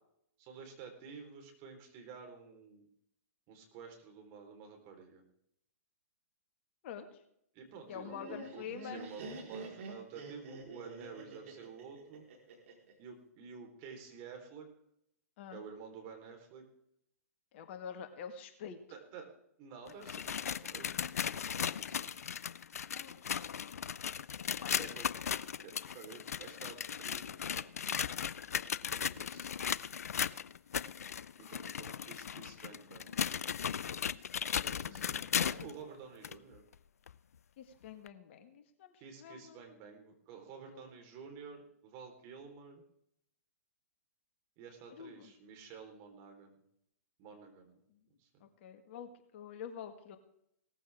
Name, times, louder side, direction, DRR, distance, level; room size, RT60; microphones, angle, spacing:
voice 1, 0.4-2.9 3.5-5.2 7.5-12.2 13.0-14.7 15.5-16.6 18.9-19.3 19.6-21.2 21.5-22.2 24.8-25.1 25.6-27.7 28.9-29.6 31.4-33.2 34.6-36.6 39.0-42.8 44.6-46.6 47.2-47.8 48.2-48.4, right 6 dB, 35° right, 3 dB, 4.3 m, -51 dB
voice 2, 6.8-7.2 7.9-9.1 15.4-15.6 17.5-18.8 22.9-23.4 24.6-24.9 34.6-35.3 37.6-39.6 40.7-40.9 44.9-45.3 48.4-50.2, left 7 dB, 45° left, 7 dB, 1.9 m, -47 dB
Laughter, 7.9-12.9, right 2 dB, 55° right, 4.5 m, -47 dB
sound 1, 19.9-35.7 36.2-36.3 37.1-37.2 38.1-38.2, left 8 dB, 70° left, 0.5 m, -37 dB
18.0 x 14.5 x 3.7 m, 0.74 s
figure-of-eight pair, 115°, 9 cm